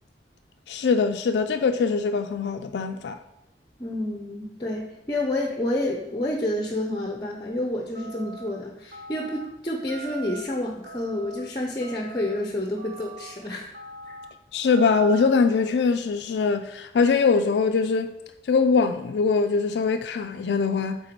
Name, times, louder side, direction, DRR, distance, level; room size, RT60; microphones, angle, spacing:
voice 1, 0.7-3.2 14.5-18.2 18.5-21.0, left 4 dB, 70° left, 0.4 m, -22 dB
voice 2, 3.8-13.7 14.1-14.2, left 1 dB, 25° left, 0.7 m, -29 dB
sound 1, 7.9-8.5 8.9-9.4 9.9-10.4 10.8-11.4 11.8-12.3 12.8-13.3 13.7-14.3 14.7-15.2, right 4 dB, 55° right, 0.9 m, -41 dB
8.0 x 3.5 x 4.5 m
head